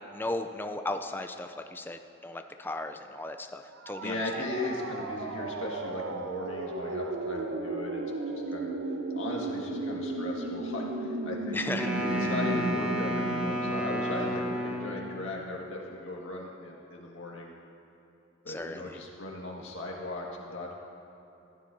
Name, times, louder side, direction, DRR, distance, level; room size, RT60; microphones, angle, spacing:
voice 1, 0.1-4.4 11.5-11.9 18.5-19.0, left 2 dB, 10° left, 6 dB, 0.4 m, -36 dB
sound 1, 3.8-15.6, right 2 dB, 75° right, 0.6 m, -35 dB
voice 2, 4.0-8.0 8.3-8.7 9.1-11.6 11.9-17.5 18.4-20.7, left 2 dB, 80° left, -2 dB, 1.7 m, -37 dB
Wind instrument woodwind instrument, 11.7-15.2, equal, 5° right, 0.9 m, -32 dB
16.0 x 10.0 x 2.7 m, 3.0 s
head